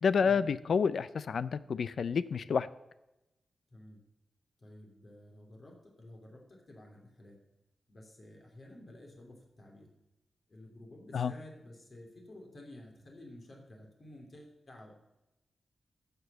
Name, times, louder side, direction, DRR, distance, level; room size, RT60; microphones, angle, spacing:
voice 1, 0.0-2.7 11.1-11.3, left 6 dB, 70° left, 16 dB, 0.5 m, -29 dB
voice 2, 4.6-7.4 7.9-9.9 10.5-14.9, left 1 dB, 45° left, 1 dB, 3.1 m, -52 dB
13.0 x 6.8 x 6.8 m, 0.94 s
wide cardioid pair, 120°, 0 cm